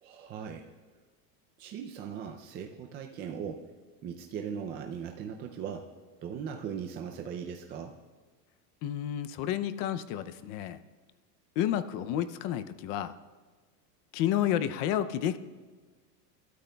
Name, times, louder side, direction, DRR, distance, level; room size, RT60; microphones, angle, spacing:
voice 1, 0.0-0.7 1.6-3.7 4.0-5.9 6.2-8.0, right 7 dB, 25° right, 3 dB, 0.4 m, -39 dB
voice 2, 8.8-10.8 11.6-13.1 14.1-15.4, left 11 dB, 40° left, 12 dB, 0.6 m, -30 dB
26.5 x 13.0 x 2.3 m, 1.4 s
supercardioid pair, 155°, 48 cm